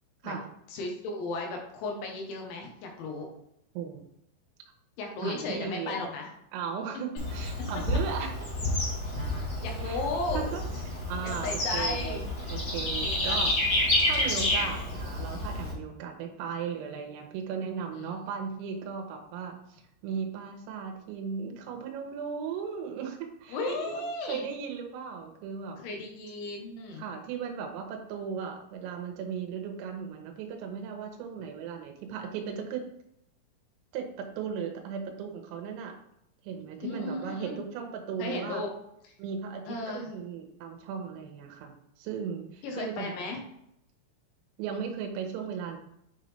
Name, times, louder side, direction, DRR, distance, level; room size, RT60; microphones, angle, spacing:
voice 1, 0.7-3.3 5.0-6.3 9.6-10.5 11.2-12.2 13.0-13.4 18.0-18.2 23.5-24.5 25.8-27.1 36.8-37.6 38.2-38.7 39.7-40.1 42.6-43.4, left 3 dB, 75° left, 1 dB, 3.2 m, -35 dB
voice 2, 5.2-6.0 6.5-8.4 9.8-10.0 10.3-12.2 12.5-13.5 14.0-25.8 27.0-32.9 33.9-36.0 36.4-38.6 39.2-41.7 42.0-43.2 44.6-45.8, right 6 dB, 90° right, 3 dB, 3.6 m, -36 dB
Bird / Insect, 7.2-15.7, left 1 dB, 90° left, 0.9 m, -29 dB
9.9 x 3.9 x 3.2 m, 0.76 s
omnidirectional pair, 5.9 m